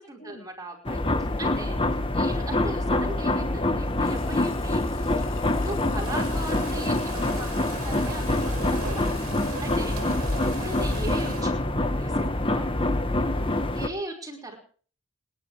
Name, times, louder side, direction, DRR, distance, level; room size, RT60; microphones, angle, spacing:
voice 1, 0.0-1.1 1.4-9.0 9.3-10.0 10.4-12.7 13.7-14.6, right 1 dB, 15° right, 0 dB, 5.1 m, -38 dB
sound 1, 0.8-13.9, left 1 dB, 25° left, 1.1 m, -26 dB
Water tap faucet / Sink (filling or washing), 3.8-13.1, left 7 dB, 60° left, 3.8 m, -48 dB
sound 2, 6.0-11.4, right 4 dB, 85° right, 2.5 m, -39 dB
voice 2, 9.8-10.5 13.1-13.7, left 1 dB, 40° left, 4 dB, 2.1 m, -47 dB
30.0 x 11.0 x 3.4 m, 0.43 s
head